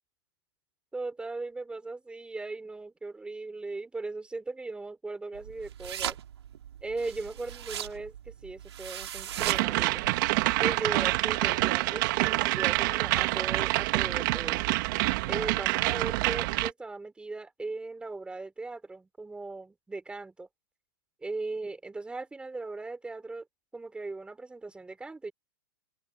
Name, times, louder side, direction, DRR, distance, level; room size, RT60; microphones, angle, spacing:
voice 1, 0.9-6.2 6.8-10.0 10.6-14.6 15.3-20.5 21.2-23.4 23.7-25.3, right 3 dB, 5° right, 6.3 m, -38 dB
sound 1, 5.3-10.6, right 10 dB, 80° right, 5.4 m, -39 dB
sound 2, 9.4-16.7, right 22 dB, 50° right, 2.5 m, -27 dB
open air
hypercardioid pair, 140°, 14 cm